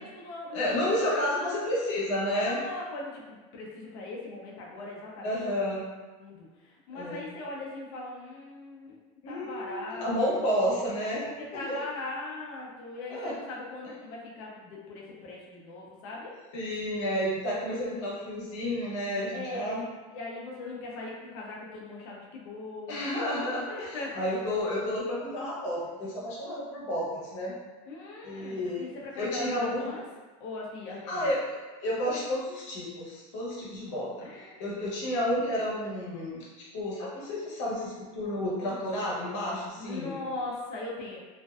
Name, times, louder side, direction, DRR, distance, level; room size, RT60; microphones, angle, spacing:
voice 1, 0.0-1.6 2.3-5.6 6.2-9.0 9.3-10.4 11.1-16.3 19.3-23.1 23.7-24.3 27.9-30.0 30.4-31.3 34.2-34.6 39.8-41.2, left 2 dB, 45° left, -3 dB, 0.5 m, -40 dB
voice 2, 0.5-2.6 5.2-5.9 6.9-7.2 9.2-11.2 11.5-11.8 13.1-13.3 16.5-19.8 22.9-27.6 28.2-28.9 29.2-29.9 31.1-31.4 31.8-40.2, left 1 dB, 65° left, -5 dB, 0.8 m, -31 dB
2.5 x 2.2 x 2.3 m, 1.2 s
supercardioid pair, 175°, 17 cm